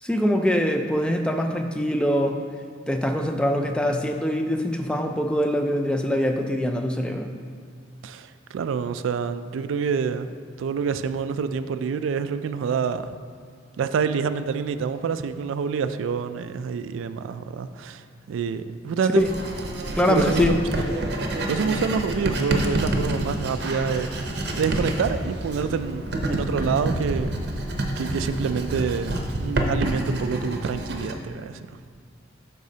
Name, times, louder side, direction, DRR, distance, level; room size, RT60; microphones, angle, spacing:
voice 1, 0.0-2.4 2.9-7.3 19.2-19.3 20.0-20.6, equal, 5° left, 4 dB, 0.3 m, -23 dB
voice 2, 8.0-13.2 13.8-19.3 20.1-24.1 24.5-27.3 28.0-31.7, right 6 dB, 90° right, 11 dB, 0.3 m, -27 dB
Writing, 19.2-31.1, right 1 dB, 55° right, 0.7 m, -28 dB
11.5 x 4.1 x 2.8 m, 2.2 s
head